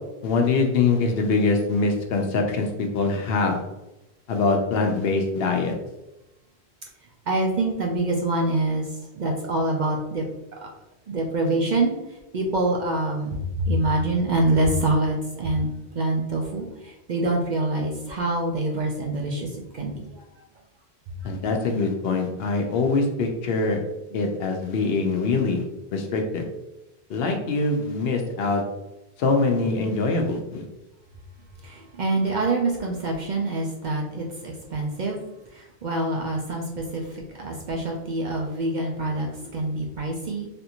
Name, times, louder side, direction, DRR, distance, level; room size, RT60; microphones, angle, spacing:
voice 1, 0.2-3.6 4.3-5.8 21.2-23.8 24.1-25.6 25.9-26.4 27.1-28.6 29.2-30.7, left 3 dB, 70° left, 3 dB, 0.8 m, -23 dB
voice 2, 7.3-10.3 10.5-10.7 11.1-15.7 15.9-20.2 21.2-21.3 24.1-24.2 31.6-35.2 35.5-40.5, right 2 dB, 55° right, 0 dB, 0.5 m, -26 dB
3.4 x 2.5 x 2.8 m, 0.97 s
omnidirectional pair, 1.1 m